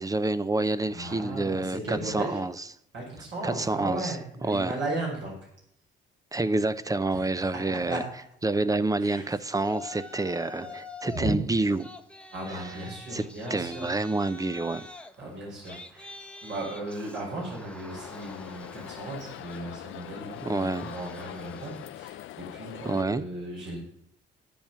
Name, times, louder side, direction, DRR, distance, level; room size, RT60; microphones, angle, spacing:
voice 1, 0.0-2.5 3.4-4.1 4.5-4.7 6.3-8.0 8.4-11.9 13.1-13.2 13.5-14.8 20.4-20.9 22.9-23.2, right 2 dB, 15° right, 0.7 m, -28 dB
voice 2, 0.9-2.4 2.9-5.4 7.1-8.0 9.0-9.4 10.6-10.7 11.1-11.3 12.3-13.9 15.2-16.1 16.4-23.8, right 1 dB, 65° right, 5.6 m, -36 dB
Yell, 9.6-11.3 11.6-22.1, left 2 dB, 5° left, 1.1 m, -46 dB
sound 1, 17.9-23.0, left 14 dB, 80° left, 0.5 m, -42 dB
10.5 x 9.0 x 7.0 m
cardioid pair, 90°, 20 cm